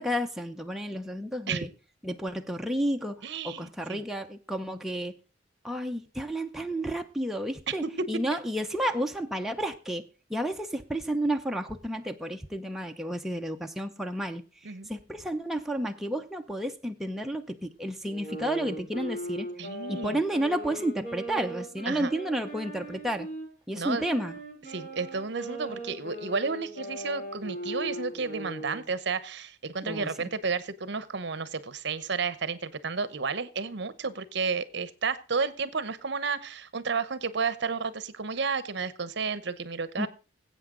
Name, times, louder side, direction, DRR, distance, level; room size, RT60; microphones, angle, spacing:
voice 1, 0.0-1.7 2.0-5.1 5.6-14.4 14.9-19.5 19.9-23.3 23.7-24.3 29.8-30.3 40.0-40.1, right 1 dB, ahead, 0.7 m, -31 dB
voice 2, 3.2-4.0 7.7-7.8 14.6-14.9 19.6-20.2 21.9-22.1 23.7-24.0 24.7-40.1, right 5 dB, 60° right, 0.9 m, -32 dB
sound 1, 18.1-23.5 23.9-28.8, right 1 dB, 40° left, 6.5 m, -39 dB
20.5 x 8.2 x 3.8 m
head